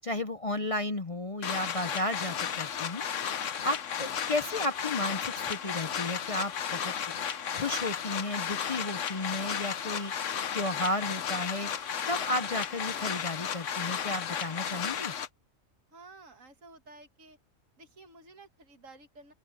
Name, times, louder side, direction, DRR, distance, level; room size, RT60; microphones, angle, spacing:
voice 1, 0.0-6.9 7.6-10.1 10.5-15.1, left 1 dB, 35° left, 0.6 m, -33 dB
sound 1, 1.4-15.3, left 8 dB, 70° left, 1.3 m, -34 dB
voice 2, 15.9-17.4 17.8-19.3, right 3 dB, 75° right, 2.5 m, -53 dB
open air
omnidirectional pair, 1.4 m